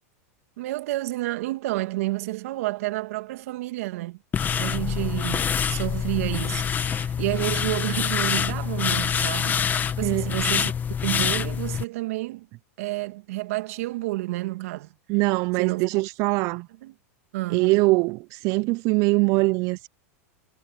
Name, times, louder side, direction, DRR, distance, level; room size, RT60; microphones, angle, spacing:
voice 1, 0.6-4.2 4.6-10.7 11.0-12.5 12.8-14.9 15.6-15.8 16.4-16.6 16.8-16.9 17.3-17.7, right 19 dB, 70° right, 2.3 m, -30 dB
sound 1, 4.3-11.8, left 7 dB, 25° left, 1.4 m, -26 dB
voice 2, 15.1-16.7 17.5-19.9, right 25 dB, 45° right, 0.4 m, -22 dB
supercardioid pair, 125°, 8 cm